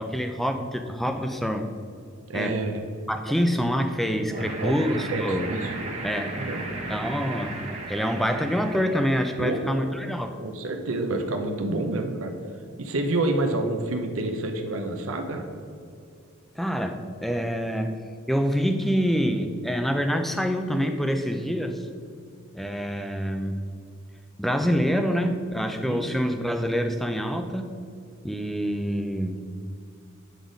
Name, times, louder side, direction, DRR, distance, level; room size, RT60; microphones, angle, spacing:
voice 1, 0.0-1.7 2.3-2.6 3.1-5.6 6.0-6.4 6.9-7.6 7.9-10.4 16.5-17.9 18.3-21.8 22.5-23.6 24.4-27.7 28.2-29.5, equal, ahead, 6 dB, 0.4 m, -26 dB
voice 2, 2.3-2.7 4.4-4.8 5.1-5.7 6.4-6.6 9.4-9.8 10.4-12.3 12.8-15.5 25.9-26.0, right 2 dB, 70° right, 4 dB, 0.6 m, -28 dB
sound 1, 4.3-9.7, right 2 dB, 30° right, 0.9 m, -36 dB
8.0 x 3.9 x 5.0 m, 2.3 s
head